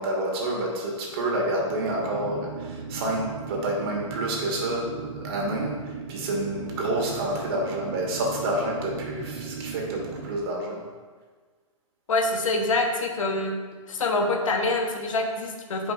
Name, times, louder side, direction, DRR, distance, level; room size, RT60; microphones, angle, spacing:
voice 1, 0.0-10.8, right 1 dB, 45° right, -1 dB, 1.8 m, -29 dB
sound 1, 1.0-10.4, right 5 dB, 75° right, 0.7 m, -37 dB
voice 2, 12.1-13.5 13.9-15.9, left 2 dB, 75° left, 3 dB, 1.2 m, -25 dB
10.0 x 5.3 x 2.6 m, 1.5 s
hypercardioid pair, 140°, 17 cm